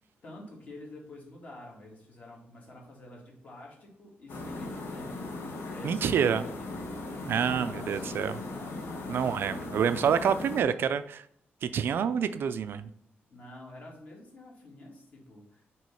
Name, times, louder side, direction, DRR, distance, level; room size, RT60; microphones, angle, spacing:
voice 1, 0.2-5.3 5.6-6.9 7.4-9.1 10.1-10.5 13.3-15.6, left 1 dB, 40° left, -2 dB, 1.8 m, -48 dB
sound 1, 4.3-10.6, left 2 dB, 75° left, 1.2 m, -38 dB
voice 2, 5.8-6.4 7.3-8.3 9.1-11.2 11.6-12.9, right 7 dB, 60° right, 12 dB, 0.4 m, -27 dB
6.0 x 3.0 x 5.7 m, 0.65 s
wide cardioid pair, 170°, 4 cm